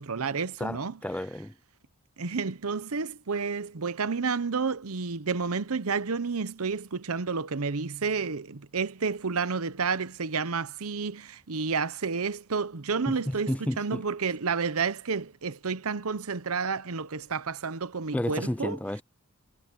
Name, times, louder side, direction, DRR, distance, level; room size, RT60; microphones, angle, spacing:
voice 1, 0.0-1.0 2.2-18.8, right 5 dB, 80° right, 0.9 m, -30 dB
voice 2, 0.6-1.5 13.1-14.0 18.1-19.0, left 1 dB, 5° left, 0.5 m, -32 dB
head